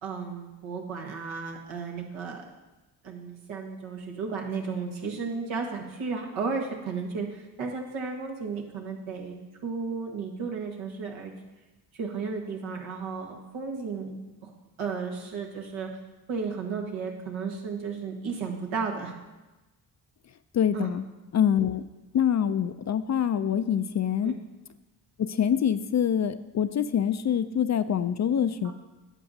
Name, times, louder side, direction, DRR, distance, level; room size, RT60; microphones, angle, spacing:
voice 1, 0.0-2.4 3.0-9.3 9.6-11.3 11.9-14.1 14.4-14.5 14.8-15.9 16.3-19.1 20.7-20.9 24.2-24.3 28.6-28.7, right 5 dB, 80° right, 0 dB, 1.6 m, -34 dB
voice 2, 20.5-21.0 21.3-21.8 22.1-24.3 25.2-28.7, left 9 dB, 40° left, 12 dB, 0.4 m, -25 dB
11.0 x 7.6 x 2.7 m, 1.1 s
supercardioid pair, 55°, 46 cm